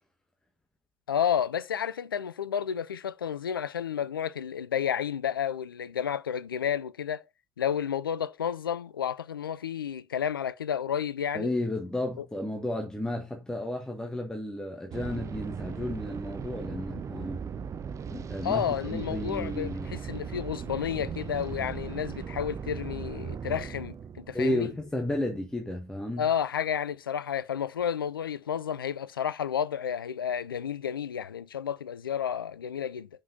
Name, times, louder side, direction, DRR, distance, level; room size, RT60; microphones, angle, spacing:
voice 1, 1.1-7.2 7.6-11.5 12.2-12.3 18.4-24.7 26.2-33.1, left 8 dB, 75° left, 0.4 m, -31 dB
voice 2, 11.3-17.4 18.1-19.9 24.3-26.3, left 1 dB, 5° left, 1.5 m, -32 dB
sound 1, 14.9-25.7, right 7 dB, 25° right, 0.5 m, -38 dB
6.0 x 5.0 x 5.4 m
figure-of-eight pair, 65°, 12 cm